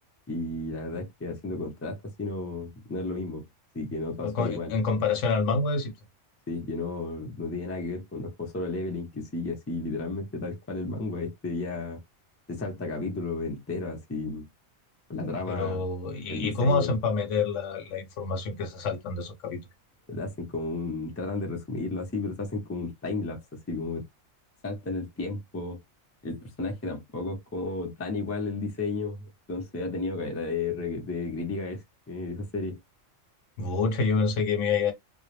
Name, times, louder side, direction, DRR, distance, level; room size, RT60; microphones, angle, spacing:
voice 1, 0.3-3.4 3.7-4.7 6.5-12.0 12.5-14.5 15.1-15.8 16.3-17.0 20.1-23.4 23.7-24.0 24.6-25.8 26.2-32.8, left 3 dB, 20° left, 0.3 m, -33 dB
voice 2, 4.2-5.9 15.5-19.6 33.6-34.9, left 4 dB, 70° left, 0.9 m, -27 dB
2.2 x 2.0 x 3.0 m
omnidirectional pair, 1.4 m